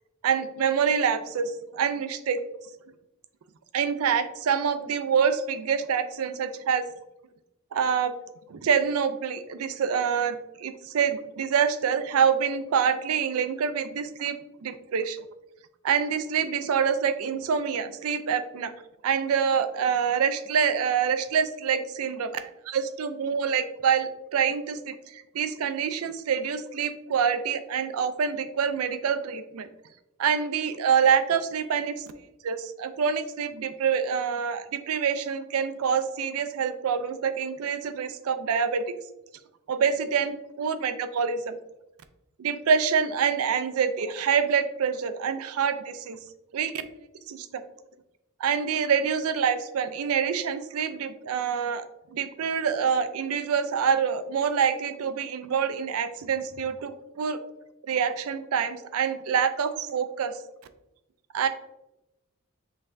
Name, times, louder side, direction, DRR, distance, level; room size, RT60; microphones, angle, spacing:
voice 1, 0.2-2.4 3.7-6.8 7.7-8.1 8.5-14.3 14.6-15.2 15.8-18.7 19.0-29.7 30.2-32.0 32.4-38.8 39.7-41.6 42.4-46.2 46.5-46.7 47.3-47.6 48.4-51.8 52.1-57.4 57.9-60.3 61.3-61.5, right 7 dB, 80° right, 11 dB, 0.4 m, -26 dB
5.3 x 3.3 x 2.5 m, 0.92 s
head